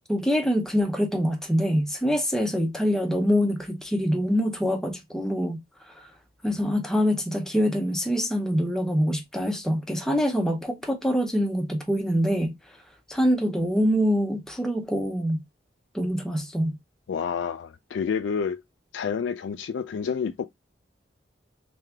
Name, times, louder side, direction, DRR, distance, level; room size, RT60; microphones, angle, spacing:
voice 1, 0.1-5.6 6.4-12.5 13.1-15.4 15.9-16.8, equal, 5° left, 0.7 m, -25 dB
voice 2, 17.1-18.6 18.9-20.5, left 6 dB, 80° left, 0.3 m, -29 dB
3.4 x 3.3 x 3.3 m
head